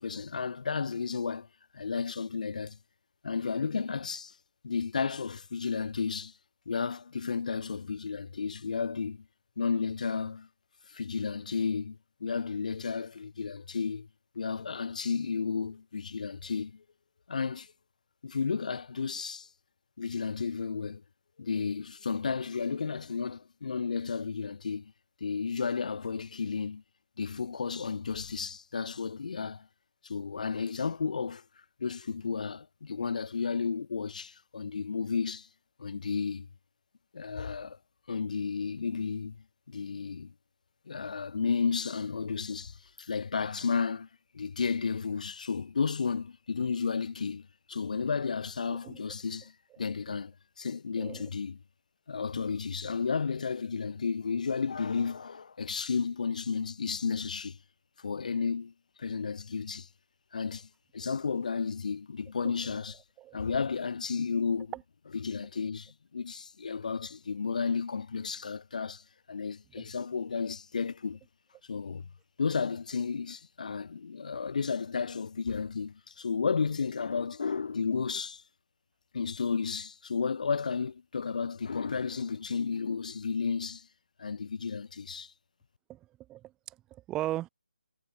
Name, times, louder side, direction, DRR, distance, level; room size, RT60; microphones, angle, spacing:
voice 1, 0.0-1.5 1.7-2.8 3.2-4.3 4.6-6.3 6.7-9.3 9.6-10.5 10.9-14.1 14.4-16.8 17.3-17.7 18.2-19.5 20.0-21.0 21.4-24.9 25.2-26.8 27.2-29.7 30.0-31.4 31.8-35.5 35.8-36.5 37.1-37.8 38.1-39.4 39.7-40.3 40.9-44.1 44.3-51.6 52.1-57.6 58.0-58.7 59.0-59.9 60.3-60.7 60.9-63.0 63.3-64.7 65.1-69.0 69.3-71.2 71.7-72.1 72.4-78.4 79.1-83.9 84.2-85.3, left 5 dB, 45° left, 2.2 m, -33 dB
voice 2, 48.7-49.0 51.0-51.3 63.2-63.4 64.7-64.8 85.9-86.0 86.3-87.5, right 14 dB, 10° right, 1.8 m, -37 dB
figure-of-eight pair, 150°, 5 cm